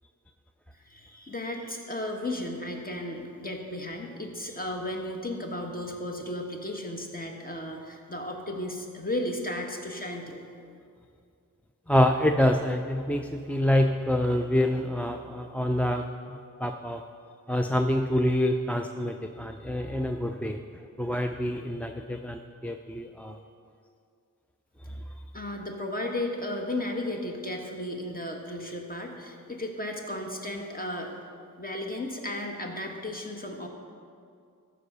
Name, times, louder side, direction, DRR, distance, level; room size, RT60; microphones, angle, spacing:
voice 1, 0.7-10.4 25.3-31.1 31.6-33.7, left 1 dB, 25° left, 2 dB, 1.5 m, -34 dB
voice 2, 11.9-17.0 17.5-20.6 21.0-23.4, left 1 dB, 5° left, 5 dB, 0.4 m, -26 dB
13.5 x 4.9 x 6.6 m, 2.4 s
wide cardioid pair, 70°, 34 cm